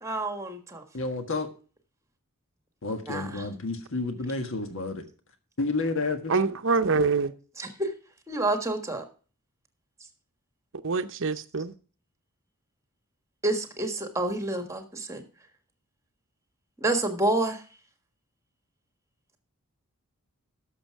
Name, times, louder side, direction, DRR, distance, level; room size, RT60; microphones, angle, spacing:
voice 1, 0.0-0.8 3.1-3.4 7.6-7.9 8.3-9.0 13.4-15.2 16.8-17.6, right 2 dB, 15° right, 1.4 m, -28 dB
voice 2, 0.9-1.5 2.8-5.0 5.6-6.3, left 3 dB, 60° left, 1.5 m, -30 dB
voice 3, 6.3-7.3 10.8-11.7, right 4 dB, 60° right, 0.7 m, -25 dB
12.0 x 6.9 x 4.5 m
head